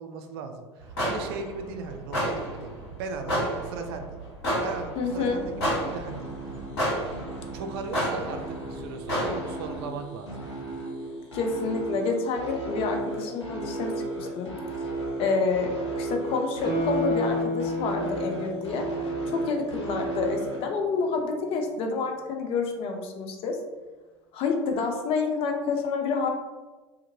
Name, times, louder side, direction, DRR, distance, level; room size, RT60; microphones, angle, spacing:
voice 1, 0.0-2.7 3.0-4.2 4.6-6.6 7.5-10.4, right 4 dB, 55° right, 5 dB, 0.4 m, -37 dB
sound 1, 0.8-9.8, equal, 65° left, 1.2 m, -32 dB
sound 2, 5.0-20.6, right 2 dB, 85° left, 0.9 m, -35 dB
voice 2, 5.0-5.5 11.3-14.5 15.2-18.9 19.3-23.6 24.3-26.3, left 4 dB, 40° left, 3 dB, 0.5 m, -28 dB
Guitar, 16.6-19.9 20.2-20.3, left 1 dB, 15° left, 1.4 m, -30 dB
2.5 x 2.5 x 2.7 m, 1.2 s
figure-of-eight pair, 70°, 14 cm